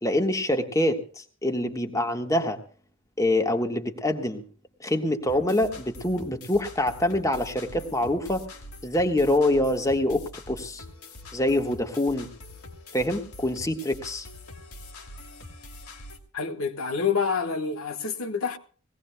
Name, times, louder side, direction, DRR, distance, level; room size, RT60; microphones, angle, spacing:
voice 1, 0.0-2.6 3.2-4.4 4.8-8.4 8.8-10.8 11.3-12.3 12.9-14.3, left 1 dB, 15° left, 1.3 m, -25 dB
sound 1, 5.3-16.2, left 2 dB, 90° left, 2.7 m, -44 dB
voice 2, 16.3-18.6, left 5 dB, 70° left, 1.4 m, -27 dB
21.0 x 17.0 x 2.2 m
head